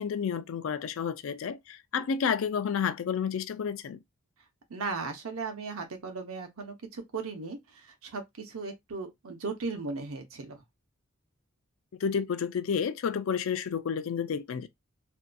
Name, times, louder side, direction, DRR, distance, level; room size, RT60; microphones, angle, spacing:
voice 1, 0.0-4.0 12.0-14.7, left 7 dB, 70° left, 0.3 m, -30 dB
voice 2, 4.7-10.6, right 4 dB, 85° right, 0.8 m, -37 dB
2.6 x 2.5 x 2.2 m
head